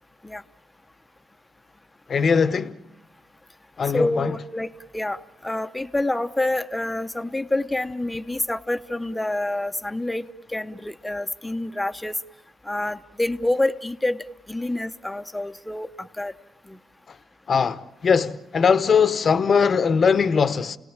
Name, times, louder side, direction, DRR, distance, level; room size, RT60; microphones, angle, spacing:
voice 1, 2.1-2.8 3.8-4.3 17.1-17.2 17.5-20.8, left 6 dB, 45° left, 1.0 m, -20 dB
voice 2, 3.9-10.2 10.5-12.1 12.7-14.2 14.5-16.3 16.7-16.8, left 1 dB, 10° left, 0.9 m, -27 dB
29.5 x 18.0 x 8.9 m
cardioid pair, 90°, 0 cm